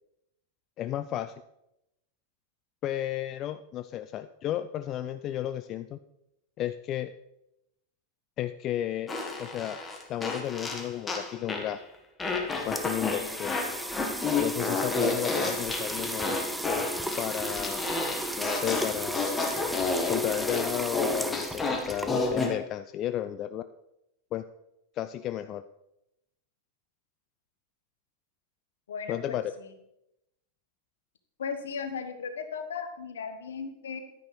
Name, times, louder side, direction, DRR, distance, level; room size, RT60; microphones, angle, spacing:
voice 1, 0.8-1.4 2.8-6.0 6.6-7.1 8.4-9.1 9.4-9.8 10.1-11.8 12.6-13.6 14.3-16.3 17.2-17.9 18.4-19.4 20.1-23.6 24.3-24.4 24.9-25.6 29.1-29.5, left 12 dB, 35° left, 11 dB, 0.3 m, -33 dB
Fart, 9.1-11.8 12.2-22.5, left 3 dB, 15° left, 1.4 m, -31 dB
sound 1, 12.2-22.5, right 1 dB, 5° right, 0.6 m, -35 dB
voice 2, 28.9-29.7 31.4-34.0, left 6 dB, 65° left, 8 dB, 1.1 m, -36 dB
10.5 x 9.9 x 3.2 m, 0.85 s
figure-of-eight pair, 90°, 0 cm